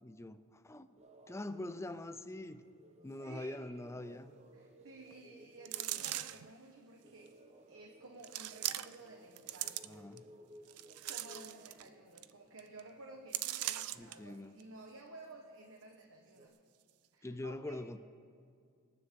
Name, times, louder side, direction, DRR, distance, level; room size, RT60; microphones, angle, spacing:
voice 1, 0.0-0.9 1.3-2.6 3.0-4.3 9.8-10.3 14.0-14.6 17.2-18.0, left 1 dB, 10° left, 11 dB, 0.5 m, -44 dB
sound 1, 0.9-16.5, right 1 dB, 30° right, 0.9 m, -61 dB
voice 2, 3.2-4.1 4.5-7.3 7.7-10.0 11.0-16.6 17.1-17.8, right 2 dB, 65° right, 2 dB, 1.2 m, -54 dB
sound 2, 5.6-6.5 7.3-7.4 8.2-9.1 9.4-10.2 10.7-11.9 12.2-12.3 12.6-12.8 13.3-14.1 14.6-14.7, right 14 dB, 90° right, 0.5 m, -39 dB
25.0 x 9.8 x 3.7 m, 2.3 s
head